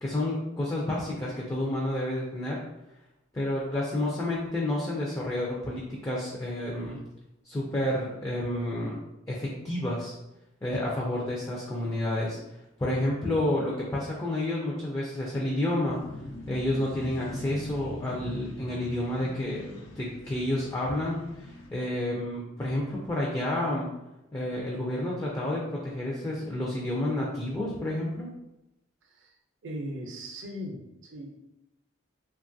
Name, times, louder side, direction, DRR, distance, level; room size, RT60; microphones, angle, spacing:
voice 1, 0.0-2.6 3.3-7.0 7.4-9.0 9.3-10.1 10.6-12.4 12.8-16.0 16.5-23.9 24.3-28.3, left 1 dB, 15° left, -4 dB, 0.3 m, -30 dB
sound 1, 15.8-21.7, left 1 dB, 90° left, 0.5 m, -41 dB
voice 2, 29.0-29.3 29.6-31.4, equal, 65° right, 2 dB, 0.5 m, -39 dB
2.9 x 2.3 x 2.5 m, 0.94 s
head